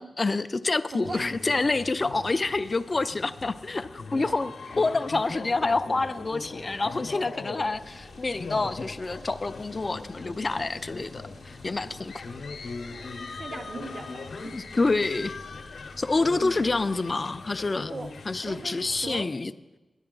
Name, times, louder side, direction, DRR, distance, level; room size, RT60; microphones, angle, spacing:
voice 1, 0.0-12.1 12.6-12.7 14.5-15.4 16.0-17.9 18.3-19.5, left 3 dB, 40° left, 13 dB, 0.4 m, -27 dB
voice 2, 0.9-1.3 4.1-4.3 12.9-14.6 17.9-18.1 18.4-19.3, right 3 dB, 50° right, 8 dB, 0.7 m, -40 dB
sound 1, 1.0-19.2, left 3 dB, 75° left, 0.7 m, -40 dB
sound 2, 7.7-16.9, left 1 dB, 80° right, 3.4 m, -51 dB
9.7 x 9.3 x 3.8 m, 1.1 s
cardioid pair, 75°, 0 cm